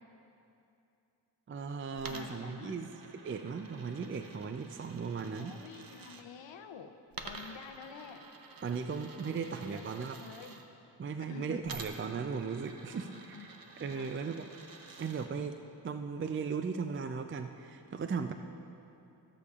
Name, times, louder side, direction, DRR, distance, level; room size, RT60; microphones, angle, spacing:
voice 1, 1.5-2.9 3.2-5.5 7.3-7.4 8.6-10.2 11.0-14.5 15.0-15.6 15.8-18.3, right 5 dB, 30° right, 7 dB, 0.4 m, -37 dB
Coin (dropping), 2.0-6.2 7.1-10.6 11.6-15.3, right 4 dB, 50° right, 0.8 m, -50 dB
voice 2, 2.1-2.9 5.4-6.9 7.2-8.2 9.7-10.5 11.3-11.6 12.9-13.6 13.9-14.1, left 6 dB, 85° left, 7 dB, 0.7 m, -49 dB
18.5 x 6.9 x 2.4 m, 2.7 s
cardioid pair, 50°, 44 cm